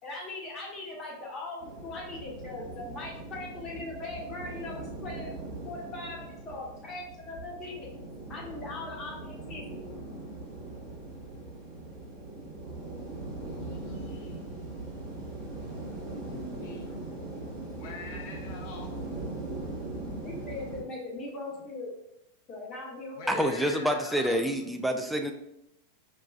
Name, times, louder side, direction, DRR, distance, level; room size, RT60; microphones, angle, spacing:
voice 1, 0.0-7.9 8.3-10.0 20.1-21.9 22.5-23.5, left 2 dB, 25° left, -3 dB, 0.9 m, -40 dB
sound 1, 1.6-20.8, right 2 dB, 50° right, 1.0 m, -40 dB
voice 2, 13.4-15.1 15.8-17.1 17.7-19.0 23.1-24.5, left 4 dB, 50° left, 2 dB, 0.7 m, -45 dB
voice 3, 23.3-25.3, equal, ahead, 4 dB, 0.4 m, -27 dB
5.2 x 2.3 x 2.3 m, 0.82 s
figure-of-eight pair, 90°, 0 cm